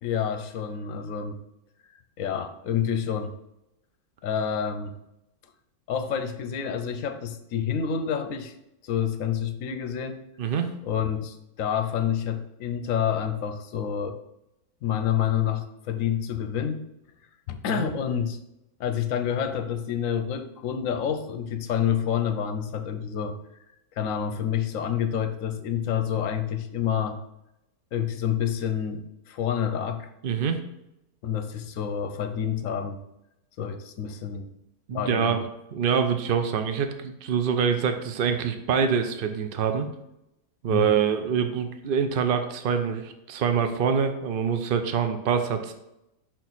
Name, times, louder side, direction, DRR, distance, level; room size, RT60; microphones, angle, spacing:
voice 1, 0.0-1.4 2.2-3.4 4.2-5.0 5.9-8.5 8.8-10.2 10.8-14.2 14.8-16.8 17.5-18.4 18.8-23.4 23.9-27.2 27.9-30.1 31.2-33.0 33.6-34.5 34.9-35.4 40.7-41.0, left 8 dB, 65° left, 8 dB, 0.9 m, -28 dB
voice 2, 10.4-10.7 17.7-17.9 30.2-30.6 34.9-39.9 40.6-45.7, right 7 dB, 85° right, 7 dB, 0.4 m, -25 dB
6.1 x 4.5 x 4.0 m, 0.86 s
omnidirectional pair, 1.6 m